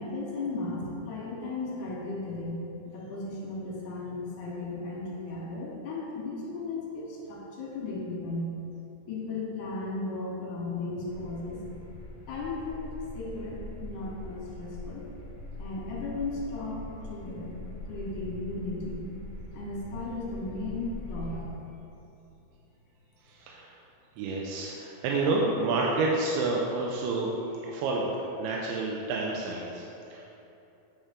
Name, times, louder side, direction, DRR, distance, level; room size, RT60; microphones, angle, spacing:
voice 1, 0.0-2.6 2.9-8.5 9.1-11.6 12.3-12.9 13.1-15.0 15.6-16.8 17.1-17.6 17.9-19.1 19.5-21.5, left 3 dB, 80° left, -4 dB, 3.3 m, -35 dB
sound 1, 11.1-21.5, left 1 dB, 65° left, 0.9 m, -42 dB
voice 2, 23.2-23.8 24.2-29.9 30.1-30.2, right 3 dB, 90° right, -2 dB, 2.6 m, -29 dB
8.9 x 4.4 x 3.6 m, 2.9 s
omnidirectional pair, 4.4 m